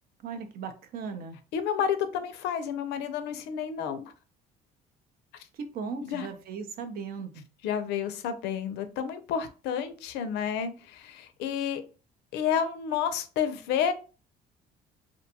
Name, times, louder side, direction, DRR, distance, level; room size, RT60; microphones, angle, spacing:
voice 1, 0.2-1.4 5.6-7.4, right 5 dB, 65° right, 0.6 m, -37 dB
voice 2, 1.5-4.1 6.1-6.3 7.6-11.8 12.3-13.9, left 8 dB, 85° left, 0.5 m, -30 dB
2.5 x 2.2 x 2.7 m
cardioid pair, 110°, 17 cm